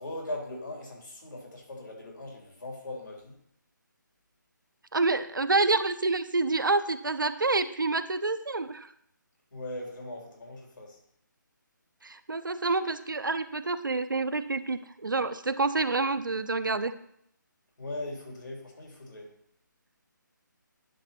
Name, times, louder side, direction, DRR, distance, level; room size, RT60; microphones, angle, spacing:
voice 1, 0.0-3.4 9.5-11.0 17.8-19.4, left 1 dB, 70° left, 0 dB, 3.2 m, -39 dB
voice 2, 4.9-8.9 12.0-16.9, right 3 dB, 75° right, 11 dB, 0.7 m, -28 dB
10.0 x 4.0 x 5.7 m, 0.71 s
figure-of-eight pair, 150°, 11 cm